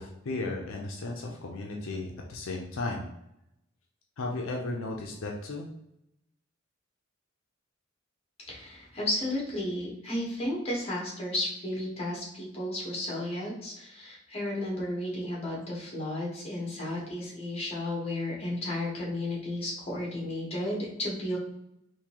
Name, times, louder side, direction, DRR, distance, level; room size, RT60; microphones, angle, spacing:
voice 1, 0.0-3.1 4.2-5.7, left 2 dB, 75° left, 0 dB, 0.5 m, -35 dB
voice 2, 8.5-21.4, left 1 dB, 30° left, -3 dB, 1.2 m, -33 dB
3.7 x 2.6 x 2.9 m, 0.83 s
head